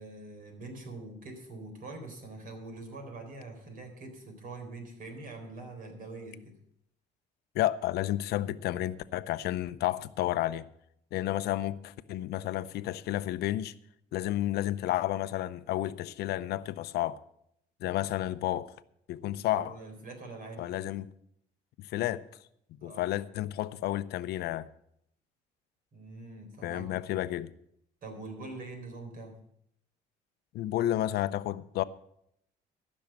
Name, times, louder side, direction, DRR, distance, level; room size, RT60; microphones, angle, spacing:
voice 1, 0.0-6.5 19.3-20.7 22.8-23.1 25.9-27.0 28.0-29.3, right 2 dB, 55° right, 3.9 m, -44 dB
voice 2, 7.5-10.6 11.1-13.7 14.1-17.2 17.8-18.7 19.1-19.8 20.6-21.1 21.8-22.2 22.8-24.7 26.6-27.5 30.5-31.8, left 14 dB, 75° left, 0.6 m, -31 dB
14.0 x 6.3 x 7.6 m
cardioid pair, 110°, 17 cm